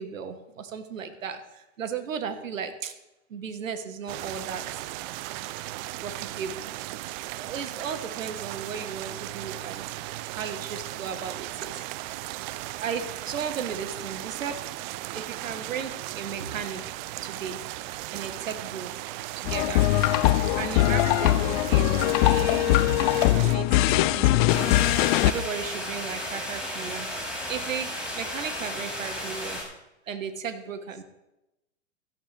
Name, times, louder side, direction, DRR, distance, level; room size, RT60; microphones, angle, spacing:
voice 1, 0.0-1.4 1.8-2.9 3.3-4.8 6.0-6.7 7.3-9.8 10.3-11.8 12.8-14.6 15.1-16.9 17.2-17.6 18.1-18.9 19.3-19.8 20.6-22.9 23.3-24.8 25.2-27.1 27.5-29.6 30.1-31.0, right 6 dB, 80° right, 8 dB, 1.7 m, -35 dB
sound 1, 4.1-23.6, right 16 dB, 35° right, 0.6 m, -37 dB
sound 2, 19.4-25.3, left 16 dB, 40° left, 0.5 m, -21 dB
sound 3, 24.5-29.6, equal, 5° right, 6.1 m, -34 dB
16.5 x 13.5 x 3.5 m, 0.93 s
hypercardioid pair, 115°, 39 cm